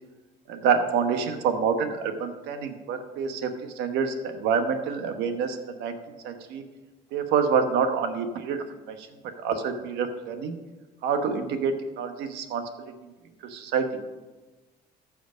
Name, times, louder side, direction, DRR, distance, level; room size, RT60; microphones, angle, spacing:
voice 1, 0.5-3.5 3.8-5.9 6.2-6.6 7.1-9.1 9.4-10.6 11.0-12.9 13.5-13.8, right 6 dB, 90° right, 7 dB, 1.2 m, -27 dB
14.5 x 5.0 x 5.2 m, 1.2 s
cardioid pair, 110°, 17 cm